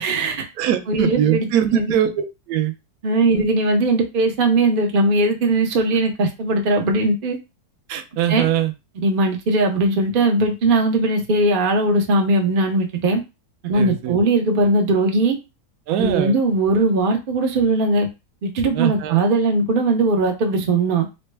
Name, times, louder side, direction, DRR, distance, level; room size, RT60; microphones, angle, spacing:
voice 1, 0.0-0.5 0.9-1.9 3.0-7.4 8.3-8.5 9.0-13.2 13.6-15.4 15.9-18.1 18.4-21.0, right 2 dB, 55° right, 2 dB, 0.6 m, -19 dB
voice 2, 0.6-2.7 3.3-3.4 7.9-8.7 13.7-14.2 15.9-16.3 18.7-19.2, right 10 dB, 70° right, 8 dB, 1.0 m, -22 dB
4.1 x 2.1 x 3.3 m, 0.25 s
omnidirectional pair, 1.8 m